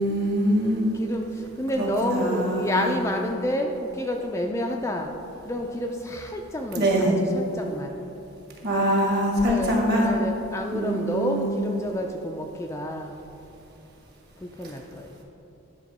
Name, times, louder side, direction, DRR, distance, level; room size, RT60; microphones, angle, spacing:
voice 1, 0.0-0.9 1.8-2.9 6.8-7.1 8.6-10.1 10.7-11.5, right 1 dB, 50° right, -2 dB, 1.5 m, -23 dB
voice 2, 0.9-5.1 5.4-8.0 9.4-13.2 14.4-15.1, left 1 dB, 15° left, 2 dB, 0.3 m, -29 dB
10.5 x 3.7 x 5.3 m, 2.9 s
head